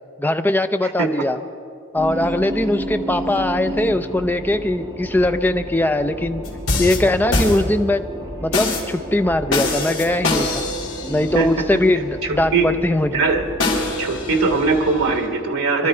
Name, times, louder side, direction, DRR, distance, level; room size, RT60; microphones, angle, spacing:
voice 1, 0.2-1.4 1.9-6.4 6.8-8.1 8.4-10.6 11.1-13.2, left 1 dB, 10° left, 9 dB, 0.4 m, -20 dB
sound 1, 2.0-15.2, equal, 15° right, 1.2 m, -32 dB
sound 2, 6.4-8.0 8.5-8.9 9.5-11.4 13.6-15.2, left 2 dB, 75° left, 2.9 m, -24 dB
voice 2, 11.3-11.7 12.2-12.7 13.1-13.4 14.0-15.9, right 4 dB, 85° right, 5 dB, 1.2 m, -20 dB
23.5 x 12.5 x 4.4 m, 2.6 s
head